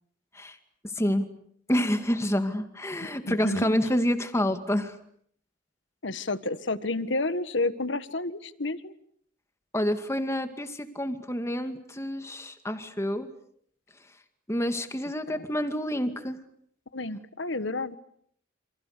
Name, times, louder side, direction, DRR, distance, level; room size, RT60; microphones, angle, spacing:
voice 1, 0.8-1.3 1.7-4.9 9.7-13.3 14.5-16.4, equal, 15° left, 7 dB, 2.3 m, -28 dB
voice 2, 2.9-3.8 6.0-8.9 15.3-15.4 16.9-18.0, left 2 dB, 65° left, 13 dB, 1.5 m, -30 dB
29.0 x 28.0 x 6.8 m, 0.67 s
head